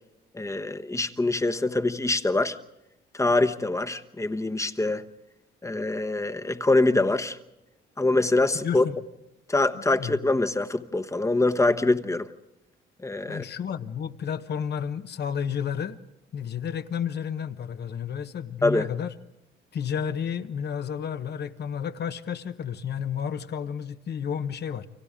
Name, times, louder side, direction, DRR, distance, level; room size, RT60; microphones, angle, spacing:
voice 1, 0.3-2.6 3.1-5.0 5.6-7.4 8.0-8.8 9.5-12.3 13.0-13.4 18.6-18.9, left 2 dB, 15° left, 1.1 m, -24 dB
voice 2, 8.5-9.0 9.7-10.2 13.3-16.0 16.3-19.1 19.7-24.9, left 7 dB, 55° left, 1.2 m, -31 dB
30.0 x 24.0 x 3.7 m
cardioid pair, 90°, 20 cm